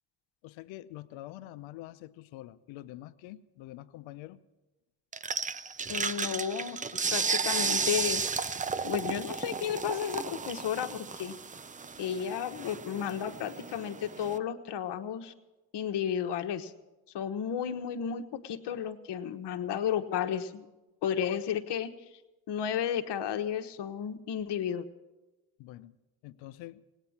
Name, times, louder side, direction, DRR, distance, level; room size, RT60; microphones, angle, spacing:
voice 1, 0.4-4.4 25.6-25.9 26.2-26.9, left 15 dB, 80° left, 0.7 m, -46 dB
sound 1, 5.1-14.4, right 5 dB, 20° right, 0.5 m, -34 dB
voice 2, 5.9-6.8 7.1-8.5 8.8-11.3 12.0-15.3 15.7-16.7 17.1-20.7 21.0-21.9 22.5-24.9, left 8 dB, 60° left, 1.2 m, -33 dB
18.0 x 9.2 x 7.1 m
supercardioid pair, 65°, 46 cm